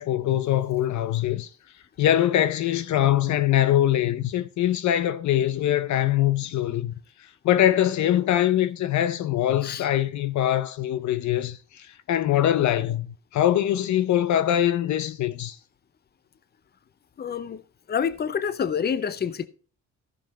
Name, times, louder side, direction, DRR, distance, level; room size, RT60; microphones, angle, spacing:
voice 1, 0.0-1.5 2.0-6.9 7.4-15.6, left 12 dB, 70° left, 0.7 m, -23 dB
voice 2, 17.2-17.6 17.9-19.5, left 7 dB, 35° left, 0.7 m, -27 dB
14.0 x 6.0 x 4.2 m
cardioid pair, 90°, 30 cm